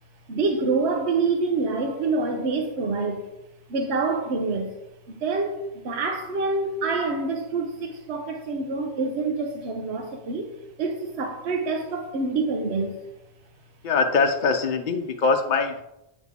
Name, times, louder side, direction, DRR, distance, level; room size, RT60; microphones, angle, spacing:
voice 1, 0.3-3.3 3.7-4.7 5.1-13.0, right 3 dB, 65° right, 1.1 m, -26 dB
voice 2, 13.8-15.8, left 4 dB, 50° left, 0.7 m, -22 dB
8.3 x 6.1 x 3.6 m
omnidirectional pair, 1.2 m